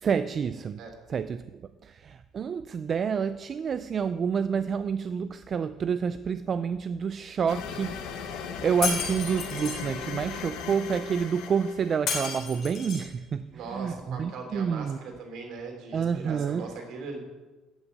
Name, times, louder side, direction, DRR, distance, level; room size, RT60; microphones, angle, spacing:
voice 1, 0.0-0.8 1.1-15.0 15.9-16.7, right 6 dB, 25° right, 12 dB, 0.3 m, -29 dB
sound 1, 7.5-12.2, left 7 dB, 65° left, 1.5 m, -38 dB
Shatter, 8.8-9.8 12.1-13.1, left 6 dB, 45° left, 4.6 m, -31 dB
voice 2, 13.5-17.2, right 4 dB, 50° right, 3 dB, 3.1 m, -39 dB
13.5 x 6.2 x 9.3 m, 1.2 s
cardioid pair, 175°, 0 cm